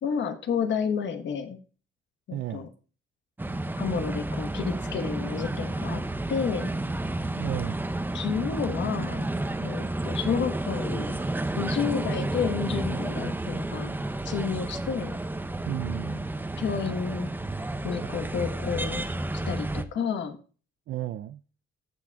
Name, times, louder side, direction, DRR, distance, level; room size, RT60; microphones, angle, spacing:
voice 1, 0.0-1.6 2.3-2.6 3.8-6.0 6.3-6.7 8.1-9.3 9.6-11.2 11.6-13.9 14.2-15.1 16.6-17.3 17.8-19.0 19.3-20.4, left 6 dB, 70° left, 1.2 m, -30 dB
voice 2, 2.3-2.7 7.4-7.8 15.7-16.3 18.0-18.2 20.9-21.4, right 13 dB, 65° right, 0.4 m, -34 dB
sound 1, 3.4-19.8, right 2 dB, 10° right, 0.7 m, -31 dB
14.5 x 6.0 x 2.3 m
cardioid pair, 90°, 20 cm